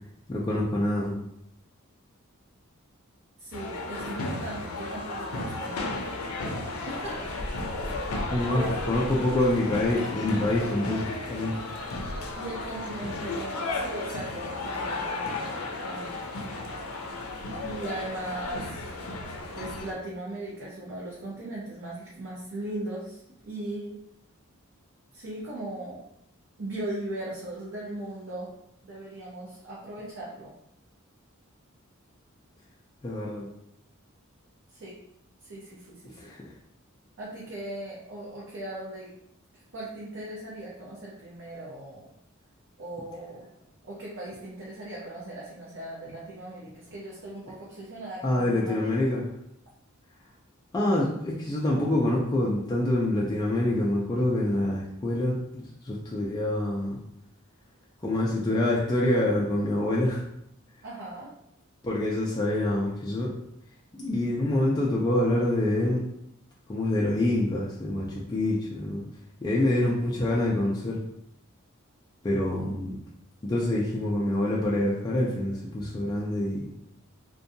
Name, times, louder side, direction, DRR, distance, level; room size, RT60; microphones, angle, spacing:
voice 1, 0.3-1.2 8.3-11.6 33.0-33.5 36.2-36.4 48.2-49.2 50.7-57.0 58.0-60.2 61.8-63.3 63.9-66.0 66.7-69.1 69.4-71.0 72.2-73.0 73.4-76.7, left 1 dB, 20° left, -4 dB, 0.3 m, -26 dB
voice 2, 3.4-6.0 6.8-7.3 8.3-8.7 12.4-16.2 17.6-18.8 19.5-23.2 23.5-23.9 25.1-26.0 26.6-28.5 28.8-30.5 34.8-34.9 35.4-36.3 37.2-39.1 39.7-42.0 42.8-43.5 43.8-48.9 60.8-61.3 69.7-70.0, right 1 dB, 60° right, -6 dB, 0.6 m, -38 dB
sound 1, 3.5-19.9, left 2 dB, 90° left, 0.5 m, -34 dB
2.6 x 2.2 x 2.6 m, 0.77 s
head